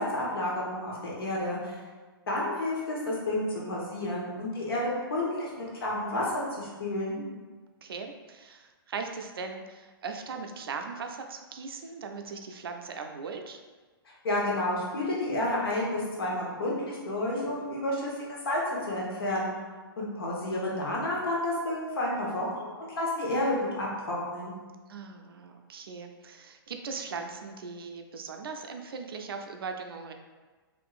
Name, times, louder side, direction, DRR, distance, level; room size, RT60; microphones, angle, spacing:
voice 1, 0.0-1.8 2.3-7.2 14.1-19.5 20.0-24.5, left 1 dB, 70° left, -4 dB, 1.1 m, -30 dB
voice 2, 7.1-7.4 7.8-13.6 24.9-30.1, right 5 dB, 70° right, 4 dB, 0.4 m, -39 dB
3.6 x 2.6 x 2.4 m, 1.3 s
hypercardioid pair, 180°, 13 cm